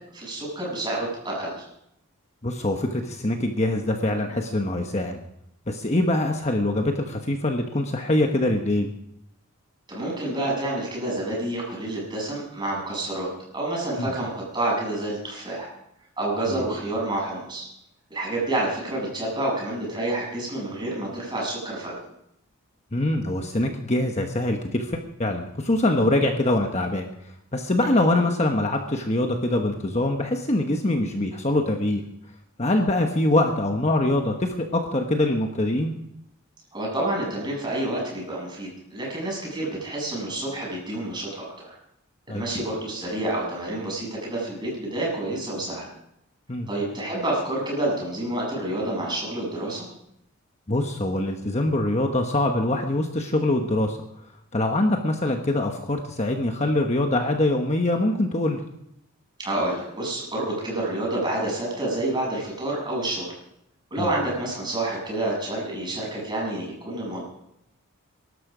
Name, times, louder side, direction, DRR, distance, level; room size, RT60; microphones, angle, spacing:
voice 1, 0.1-1.5 9.9-13.3 13.5-15.7 16.2-17.7 18.1-21.9 27.8-28.0 36.7-41.7 42.3-45.9 46.7-49.8 59.4-63.3 63.9-67.2, right 1 dB, 20° right, -3 dB, 7.1 m, -28 dB
voice 2, 2.4-5.2 5.7-8.9 14.0-14.1 16.5-16.6 22.9-27.1 27.5-32.0 32.6-35.9 42.3-42.5 46.5-46.7 50.7-54.0 54.5-58.6 64.0-64.1, left 1 dB, 30° left, 4 dB, 1.2 m, -24 dB
23.0 x 12.5 x 5.0 m, 0.80 s
head